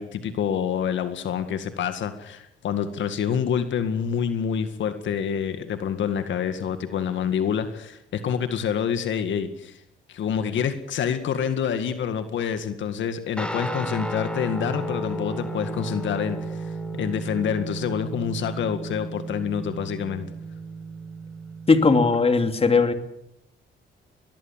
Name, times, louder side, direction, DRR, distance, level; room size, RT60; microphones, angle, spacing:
voice 1, 0.0-9.8 10.1-20.3, left 8 dB, 70° left, 9 dB, 2.0 m, -27 dB
Guitar, 13.4-22.2, right 2 dB, 5° left, 3.8 m, -33 dB
voice 2, 21.7-22.9, left 4 dB, 30° left, 7 dB, 2.8 m, -18 dB
22.0 x 20.0 x 7.5 m, 0.81 s
cardioid pair, 90°, 20 cm